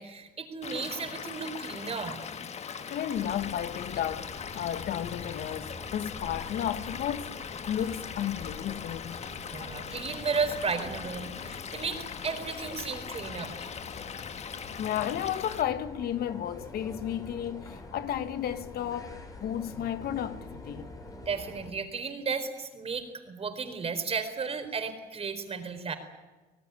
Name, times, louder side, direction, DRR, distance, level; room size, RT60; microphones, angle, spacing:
voice 1, 0.0-2.2 9.5-13.7 21.3-25.9, right 5 dB, 35° right, 4.4 m, -34 dB
Stream / Liquid, 0.6-15.6, left 7 dB, 40° left, 1.5 m, -40 dB
voice 2, 2.9-7.3 7.7-9.2 14.7-20.9, left 10 dB, 65° left, 1.4 m, -33 dB
sound 1, 3.1-21.7, left 3 dB, 20° left, 4.7 m, -46 dB
26.0 x 18.0 x 9.7 m
cardioid pair, 110°, 17 cm